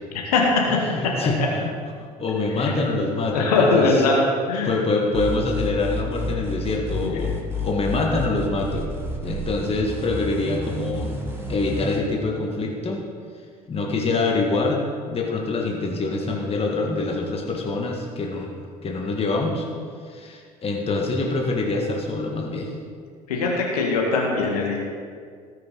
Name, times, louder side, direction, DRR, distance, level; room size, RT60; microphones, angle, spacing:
voice 1, 0.1-0.4 2.5-2.7 3.3-4.2 4.5-4.7 7.0-7.1 23.3-24.8, left 4 dB, 70° left, -1 dB, 1.7 m, -21 dB
voice 2, 0.7-1.7 2.2-4.0 4.6-9.0 9.2-11.1 11.5-13.0 13.7-14.8 15.1-19.7 20.1-22.7, left 3 dB, 30° left, 0 dB, 1.8 m, -25 dB
sound 1, 5.1-12.0, left 2 dB, 10° right, 2.9 m, -30 dB
19.0 x 6.6 x 4.1 m, 2.1 s
figure-of-eight pair, 55°, 20 cm